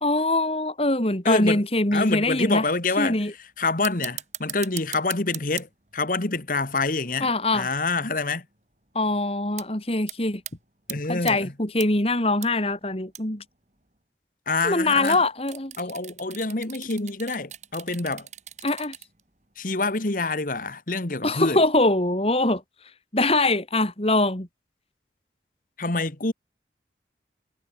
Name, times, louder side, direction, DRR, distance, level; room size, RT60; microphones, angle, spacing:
voice 1, 0.0-2.7 3.0-3.3 7.2-7.7 8.9-10.4 11.1-13.4 14.6-15.7 18.6-18.9 21.2-22.6 23.1-24.5, left 2 dB, 35° left, 3.0 m, -23 dB
voice 2, 1.2-1.6 1.9-8.4 10.9-11.5 14.5-15.2 15.8-18.3 19.6-21.6 25.8-26.3, left 3 dB, 50° left, 1.6 m, -27 dB
sound 1, 2.3-2.4 2.8-3.2 3.6-8.1 8.5-8.6 8.9-9.2 9.6-9.7 10.0-10.5 10.9-11.3 11.8-12.5 12.7-12.8 13.1-13.4 15.0-19.2 19.5-19.6, right 12 dB, 40° right, 6.9 m, -39 dB
head